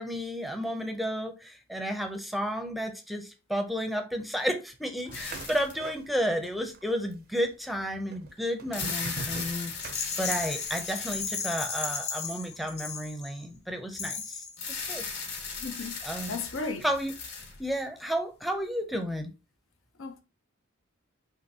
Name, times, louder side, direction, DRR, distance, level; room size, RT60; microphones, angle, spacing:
voice 1, 0.0-9.7 10.2-15.0 16.0-16.4 16.8-17.1 17.6-19.3, equal, ahead, 0.5 m, -32 dB
sound 1, 5.0-6.5 6.7-7.5 8.1-10.6, right 4 dB, 50° right, 0.4 m, -42 dB
sound 2, 5.1-5.9 6.6-6.7 8.5-11.7 14.6-18.0, left 5 dB, 60° left, 1.6 m, -37 dB
Rattle, 9.8-13.4 13.9-14.6, left 5 dB, 35° left, 0.9 m, -35 dB
voice 2, 15.6-16.9 20.0-20.2, left 3 dB, 85° left, 0.7 m, -35 dB
5.6 x 2.9 x 2.7 m
head